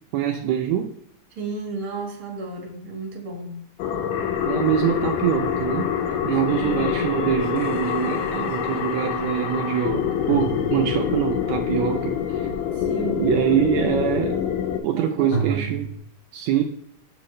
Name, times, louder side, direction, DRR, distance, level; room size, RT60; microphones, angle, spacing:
voice 1, 0.1-1.0 4.5-5.9 6.2-12.5 13.2-14.4 14.8-15.9 16.3-16.6, right 10 dB, 90° right, 3 dB, 1.5 m, -24 dB
voice 2, 1.3-3.5 6.6-7.1 12.7-13.2 14.9-15.8, right 3 dB, 40° right, 1 dB, 1.3 m, -33 dB
sound 1, 3.8-14.8, left 8 dB, 80° left, 2.2 m, -26 dB
sound 2, 5.3-8.5 10.3-11.4 15.3-16.0, right 4 dB, 50° left, 1.4 m, -34 dB
7.8 x 4.5 x 3.1 m, 0.72 s
omnidirectional pair, 3.8 m